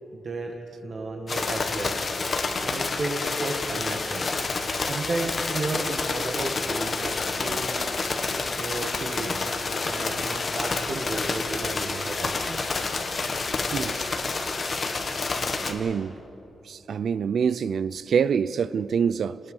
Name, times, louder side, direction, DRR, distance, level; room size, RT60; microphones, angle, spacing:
voice 1, 0.1-0.5 0.8-2.0 2.6-4.2 4.8-7.8 8.5-9.4 9.8-12.6, right 2 dB, 45° right, 1.7 m, -33 dB
sound 1, 1.3-15.7, left 3 dB, 40° left, 1.8 m, -28 dB
voice 2, 15.7-16.1 16.7-19.4, right 7 dB, 70° right, 0.5 m, -25 dB
29.0 x 20.0 x 5.5 m
wide cardioid pair, 125°, 0 cm